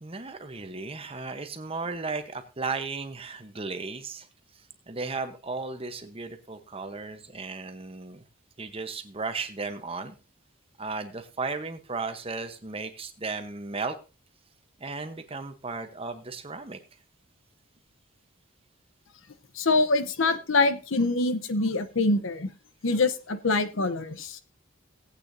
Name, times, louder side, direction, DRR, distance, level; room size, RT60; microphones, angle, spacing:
voice 1, 0.0-4.3 4.9-8.2 8.6-10.2 10.8-14.0 14.8-16.8, right 4 dB, 30° right, 8 dB, 1.0 m, -35 dB
voice 2, 19.6-22.5 22.8-24.4, left 3 dB, 75° left, 12 dB, 0.9 m, -25 dB
17.5 x 8.5 x 2.7 m, 0.30 s
head